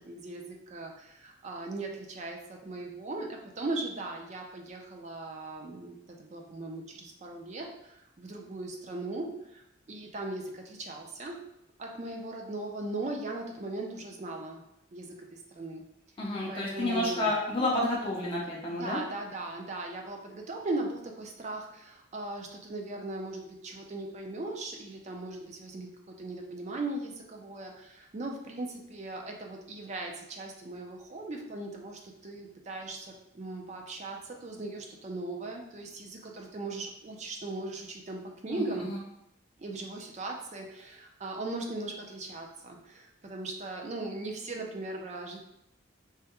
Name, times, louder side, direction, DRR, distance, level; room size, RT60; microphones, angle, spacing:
voice 1, 0.0-9.6 9.9-11.4 11.8-14.6 14.9-15.8 16.5-17.3 18.7-38.9 39.6-45.4, right 2 dB, 35° right, 1 dB, 0.4 m, -38 dB
voice 2, 16.2-19.0 38.5-39.0, left 1 dB, 30° left, -4 dB, 0.5 m, -30 dB
3.4 x 2.1 x 2.9 m, 0.81 s
head